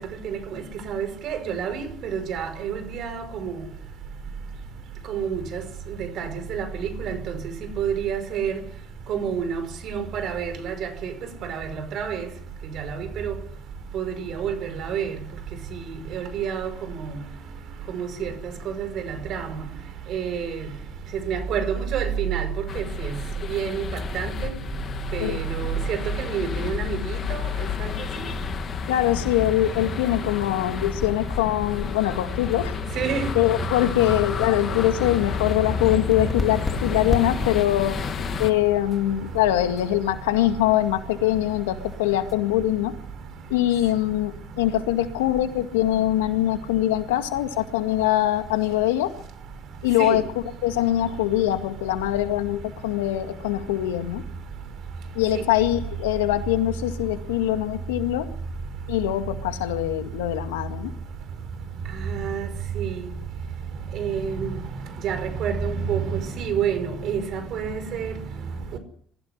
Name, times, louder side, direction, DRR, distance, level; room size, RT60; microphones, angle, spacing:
voice 1, 0.2-3.5 5.1-5.6 6.2-8.5 9.1-11.1 11.5-12.3 12.7-13.3 13.9-15.1 16.1-16.7 17.0-17.2 17.9-18.3 18.7-19.6 20.1-20.6 21.3-22.5 22.8-23.1 23.5-23.9 24.1-24.6 25.1-27.5 27.8-27.9 33.0-33.3 50.0-50.2 55.3-55.5 62.1-62.5 62.8-63.0 63.9-64.5 65.0-68.2 68.7-68.8, right 7 dB, 65° right, 5.4 m, -28 dB
sound 1, 22.7-38.5, left 7 dB, 50° left, 2.4 m, -31 dB
voice 2, 28.9-32.8 33.4-38.0 38.4-43.0 43.5-49.2 49.8-50.2 50.6-54.2 55.1-58.3 58.9-60.9, left 13 dB, 90° left, 2.0 m, -23 dB
sound 2, 35.4-42.3, left 3 dB, 25° left, 3.6 m, -36 dB
23.0 x 15.5 x 9.9 m
hypercardioid pair, 60°, 0 cm